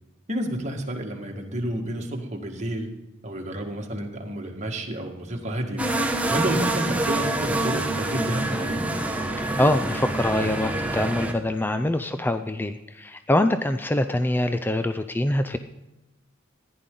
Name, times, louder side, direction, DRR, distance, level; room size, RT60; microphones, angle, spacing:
voice 1, 0.3-2.9 3.2-5.8 6.3-8.9, right 1 dB, 35° right, 2 dB, 1.7 m, -30 dB
sound 1, 5.8-11.3, right 2 dB, 5° right, 1.0 m, -26 dB
voice 2, 9.6-15.6, left 1 dB, 10° left, 9 dB, 0.4 m, -24 dB
15.0 x 10.5 x 3.8 m, 1.0 s
head